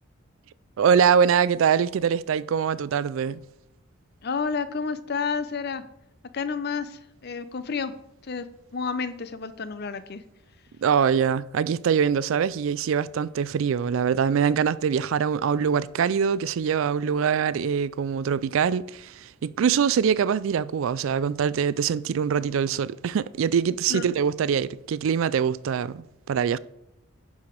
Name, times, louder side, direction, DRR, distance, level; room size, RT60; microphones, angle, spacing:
voice 1, 0.8-3.4 10.8-26.6, right 7 dB, 65° right, 0.3 m, -23 dB
voice 2, 4.2-5.8 6.3-7.9 8.2-8.5 8.7-10.2 23.9-24.0, left 5 dB, 45° left, 0.6 m, -30 dB
10.5 x 4.8 x 5.2 m
head